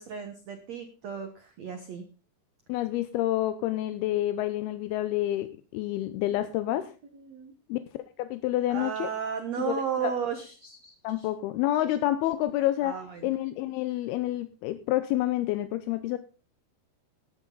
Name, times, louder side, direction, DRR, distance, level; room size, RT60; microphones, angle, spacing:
voice 1, 0.0-2.0 6.7-6.9 7.1-7.5 8.7-11.3 12.8-13.3, right 7 dB, 70° right, 6 dB, 1.6 m, -34 dB
voice 2, 2.7-5.5 5.7-6.9 7.7-7.8 8.2-9.1 9.6-10.1 11.0-12.9 13.2-16.2, left 14 dB, 80° left, 11 dB, 2.4 m, -28 dB
13.5 x 12.0 x 3.9 m, 0.35 s
omnidirectional pair, 5.1 m